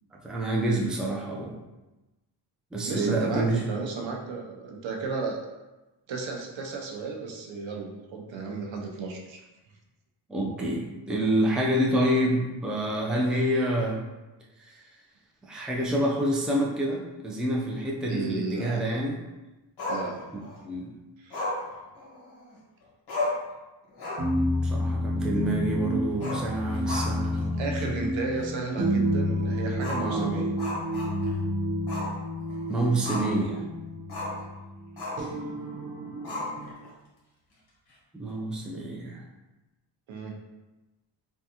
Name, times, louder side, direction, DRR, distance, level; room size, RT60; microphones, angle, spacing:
voice 1, 0.1-1.6 2.7-3.6 10.3-14.0 14.6-14.8 15.5-19.2 20.6-20.9 24.6-28.0 30.0-30.3 32.7-33.7 38.1-39.2, right 1 dB, ahead, -2 dB, 0.3 m, -27 dB
voice 2, 2.8-5.4 6.1-9.4 18.0-19.0 19.9-20.2 21.2-21.5 27.6-30.5 40.1-40.3, right 4 dB, 80° right, 1 dB, 0.7 m, -34 dB
Growling, 19.8-20.6 21.3-22.6 22.8-22.9 23.1-23.5 23.9-24.4 24.7-24.8 26.1-27.4 27.7-27.8 28.4-28.5 29.8-31.4 31.9-32.1 32.5-33.4 34.1-34.4 35.0-35.3 36.2-36.9, left 2 dB, 60° left, 1.1 m, -34 dB
sound 1, 24.2-36.7, equal, 35° right, 0.7 m, -30 dB
3.5 x 2.3 x 2.8 m, 1.1 s
cardioid pair, 95°, 45 cm